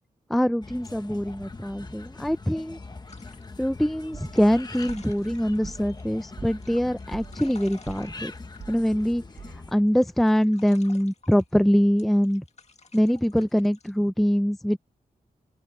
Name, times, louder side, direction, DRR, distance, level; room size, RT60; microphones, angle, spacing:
voice 1, 0.3-2.8 3.6-8.3 8.7-9.2 9.7-12.4 12.9-14.8, equal, ahead, 0.4 m, -23 dB
sound 1, 0.6-9.7, left 3 dB, 25° left, 1.2 m, -42 dB
sound 2, 3.1-6.0 6.4-9.5 9.9-11.5 12.0-13.9, left 4 dB, 45° left, 1.9 m, -52 dB
sound 3, 4.1-9.9, right 5 dB, 60° right, 2.1 m, -45 dB
open air
wide cardioid pair, 165°, 16 cm